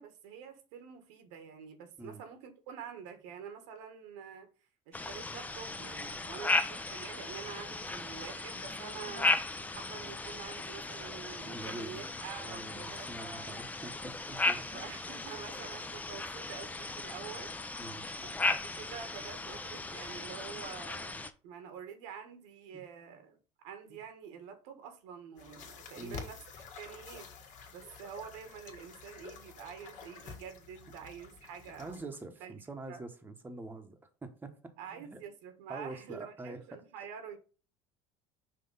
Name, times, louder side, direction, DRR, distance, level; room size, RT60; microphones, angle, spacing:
voice 1, 0.0-4.5 4.9-9.3 9.7-13.6 14.7-17.5 18.2-26.4 26.8-27.3 27.7-32.1 32.4-32.5 32.9-33.0 34.8-37.4, right 7 dB, 80° right, 1.5 m, -47 dB
sound 1, 4.9-21.3, left 2 dB, 10° left, 0.5 m, -36 dB
voice 2, 11.5-12.0 12.4-14.6 17.8-18.0 22.7-22.8 23.9-24.0 26.0-26.3 31.8-35.2 35.7-36.6, right 2 dB, 10° right, 1.1 m, -45 dB
sound 2, 25.4-32.0, left 5 dB, 55° left, 1.6 m, -49 dB
5.9 x 3.1 x 5.4 m
supercardioid pair, 110°, 15 cm